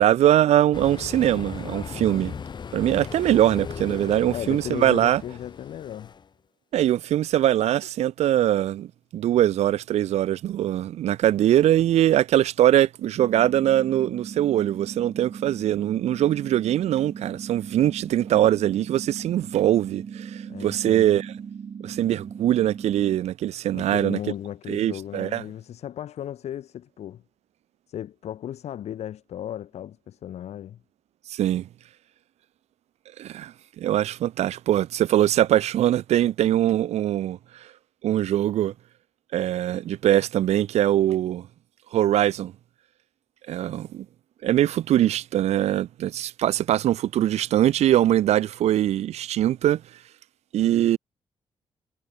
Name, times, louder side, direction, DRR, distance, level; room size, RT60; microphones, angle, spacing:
voice 1, 0.0-2.3 2.7-5.2 6.7-21.3 21.8-24.2 24.7-25.4 31.3-31.7 33.2-37.7 38.0-38.7 39.3-41.5 41.9-42.5 43.5-44.1 44.4-49.8 50.5-51.0, right 12 dB, 80° right, 0.6 m, -22 dB
sound 1, 0.7-6.3, left 6 dB, 45° left, 1.8 m, -37 dB
voice 2, 4.3-6.1 20.5-21.1 23.7-27.2 27.9-30.8, left 10 dB, 80° left, 3.0 m, -35 dB
sound 2, 13.2-23.2, right 7 dB, 45° right, 2.0 m, -38 dB
cardioid pair, 130°, 11 cm